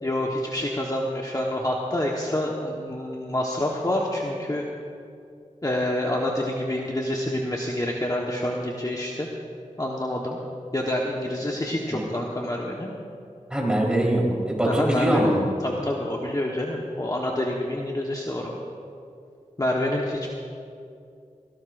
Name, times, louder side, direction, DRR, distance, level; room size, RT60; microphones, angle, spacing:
voice 1, 0.0-4.7 5.6-9.3 9.8-10.4 10.7-12.9 14.6-15.3 15.6-18.6 19.6-20.3, left 1 dB, 25° left, -2 dB, 1.3 m, -27 dB
voice 2, 13.5-15.4, right 1 dB, 5° right, -3 dB, 4.0 m, -22 dB
18.5 x 17.0 x 2.6 m, 2.4 s
cardioid pair, 45°, 13 cm